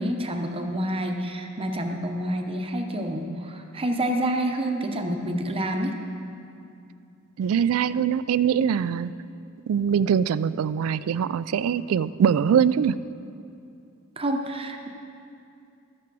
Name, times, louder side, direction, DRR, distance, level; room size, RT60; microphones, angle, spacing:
voice 1, 0.0-5.9 14.2-14.9, right 1 dB, 25° right, 3 dB, 0.8 m, -28 dB
voice 2, 7.4-9.1 9.7-13.0, right 7 dB, 75° right, 16 dB, 0.3 m, -22 dB
14.0 x 5.9 x 6.1 m, 2.6 s
head